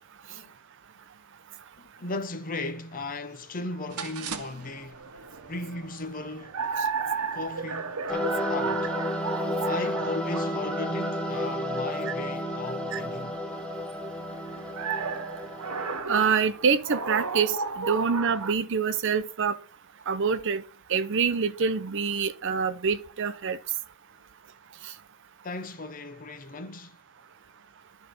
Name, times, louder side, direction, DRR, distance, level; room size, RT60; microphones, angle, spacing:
voice 1, 1.8-5.1 5.5-6.5 7.3-8.9 9.6-13.4 25.4-27.0, left 2 dB, 40° left, 0.9 m, -36 dB
sound 1, 3.9-18.5, right 5 dB, 90° right, 0.9 m, -35 dB
sound 2, 8.1-16.0, left 1 dB, 5° left, 1.2 m, -31 dB
voice 2, 16.1-19.6 20.1-20.6 20.9-23.6 24.8-24.9, right 6 dB, 55° right, 0.6 m, -26 dB
11.5 x 4.0 x 5.2 m
head